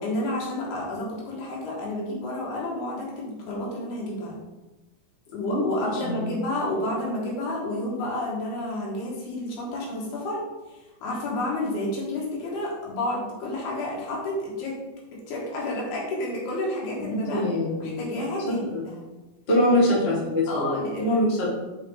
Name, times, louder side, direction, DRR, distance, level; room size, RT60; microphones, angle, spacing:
voice 1, 0.0-4.4 5.3-10.4 10.7-14.8 15.1-17.4 17.8-19.1 19.7-19.8 20.5-21.2, left 1 dB, 70° left, -3 dB, 3.6 m, -30 dB
voice 2, 17.0-18.0 18.5-18.8 19.5-21.5, left 1 dB, 25° left, -6 dB, 1.2 m, -24 dB
5.7 x 5.6 x 4.1 m, 1.1 s
omnidirectional pair, 4.8 m